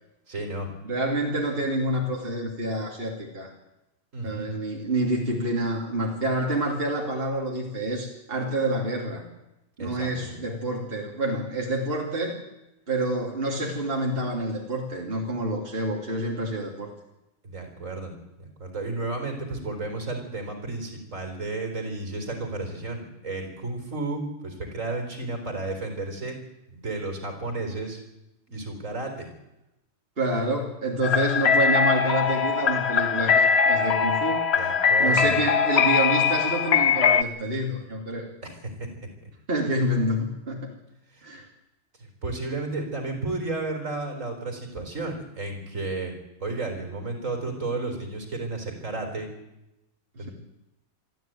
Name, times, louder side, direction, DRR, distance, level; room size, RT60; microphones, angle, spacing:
voice 1, 0.3-0.7 4.1-4.5 9.8-10.3 17.4-18.1 18.4-26.4 26.7-28.0 28.5-29.3 34.5-35.5 38.4-38.9 41.1-41.3 42.0-46.1 46.4-49.3 50.2-50.3, right 2 dB, 65° right, 5 dB, 4.6 m, -32 dB
voice 2, 0.8-3.5 4.2-9.2 9.8-12.3 12.9-16.9 30.2-34.4 35.0-38.3 39.5-40.7 41.2-41.4 50.2-50.3, right 1 dB, 40° right, -1 dB, 3.1 m, -27 dB
sound 1, 31.0-37.2, left 6 dB, 50° left, 1.2 m, -21 dB
23.0 x 13.5 x 9.3 m, 0.92 s
omnidirectional pair, 1.4 m